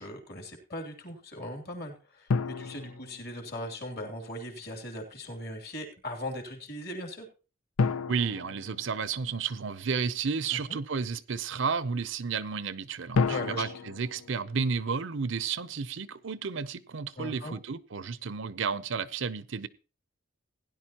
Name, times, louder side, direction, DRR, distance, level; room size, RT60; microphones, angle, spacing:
voice 1, 0.0-7.3 10.5-10.8 13.3-13.7 17.2-17.6, left 1 dB, 50° left, 2.8 m, -39 dB
sound 1, 2.3-3.9 7.8-9.7 13.1-15.4, left 4 dB, 85° left, 0.5 m, -32 dB
voice 2, 8.1-19.7, right 5 dB, 65° right, 0.6 m, -32 dB
16.5 x 10.5 x 2.9 m
head